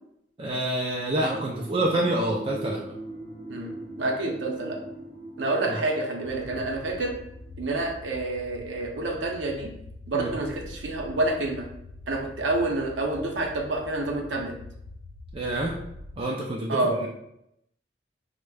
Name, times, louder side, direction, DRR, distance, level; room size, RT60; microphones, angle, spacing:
voice 1, 0.4-2.8 5.7-5.8 6.5-6.6 10.1-10.3 15.3-15.8 16.2-17.1, right 1 dB, 30° right, -2 dB, 0.3 m, -27 dB
sound 1, 1.1-7.9, right 1 dB, 5° right, 0.8 m, -41 dB
voice 2, 4.0-4.8 5.4-7.1 7.6-9.7 10.1-11.7 12.1-14.5 16.7-17.0, right 2 dB, 80° right, 1 dB, 0.6 m, -28 dB
sound 2, 6.2-16.2, left 2 dB, 90° left, 0.4 m, -45 dB
4.7 x 2.1 x 2.2 m, 0.78 s
head